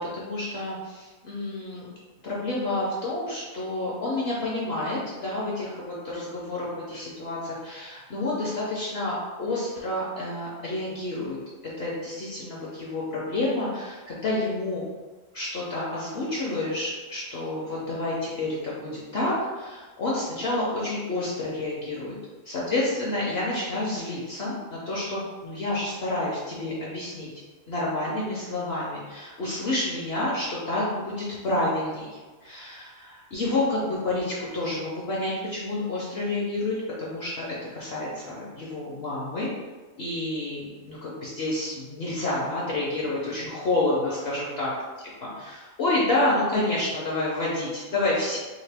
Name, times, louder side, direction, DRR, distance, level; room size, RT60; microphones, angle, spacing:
voice 1, 0.0-1.9 2.2-11.4 11.8-14.9 15.3-22.2 22.4-27.3 27.7-39.5 40.0-44.7 45.2-48.4, left 2 dB, 60° left, -6 dB, 0.7 m, -29 dB
2.9 x 2.9 x 3.3 m, 1.3 s
omnidirectional pair, 1.6 m